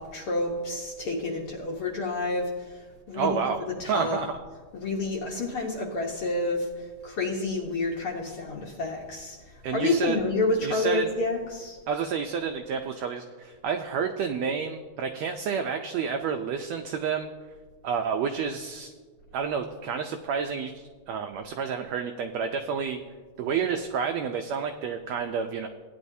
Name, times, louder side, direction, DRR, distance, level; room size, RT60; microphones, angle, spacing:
voice 1, 0.0-2.5 3.1-3.4 3.8-4.2 4.7-9.4 9.7-11.8, left 2 dB, 65° left, -1 dB, 1.5 m, -29 dB
voice 2, 3.1-3.6 3.9-4.4 9.6-10.2 10.6-11.1 11.9-17.3 17.8-18.9 19.3-23.0 23.4-25.7, right 6 dB, 85° right, 6 dB, 1.5 m, -29 dB
16.5 x 10.0 x 2.7 m, 1.4 s
omnidirectional pair, 3.6 m